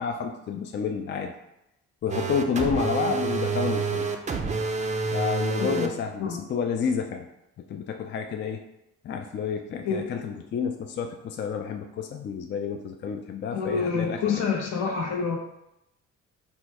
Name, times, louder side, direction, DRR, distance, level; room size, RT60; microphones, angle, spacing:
voice 1, 0.0-1.3 2.0-4.1 5.1-7.3 7.7-8.6 9.0-14.4, left 6 dB, 40° left, 5 dB, 0.4 m, -30 dB
sound 1, 2.1-5.9, right 4 dB, 25° right, 0.5 m, -28 dB
voice 2, 5.6-6.4 9.8-10.4 13.5-15.4, left 5 dB, 70° left, 1 dB, 1.0 m, -28 dB
4.2 x 2.3 x 4.5 m, 0.84 s
cardioid pair, 90°, 30 cm